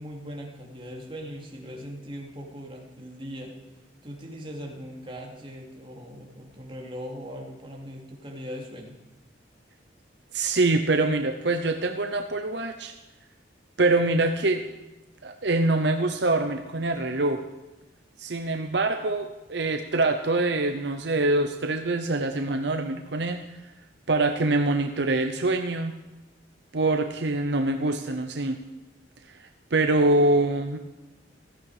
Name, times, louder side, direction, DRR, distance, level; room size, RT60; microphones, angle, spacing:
voice 1, 0.0-3.5 4.0-9.0, equal, 25° right, 0 dB, 2.6 m, -40 dB
voice 2, 10.3-12.9 13.8-14.6 15.2-17.4 18.2-23.4 24.1-25.9 26.7-28.6 29.3-30.8, right 2 dB, 65° right, 6 dB, 0.8 m, -24 dB
16.5 x 14.0 x 5.0 m, 1.0 s
head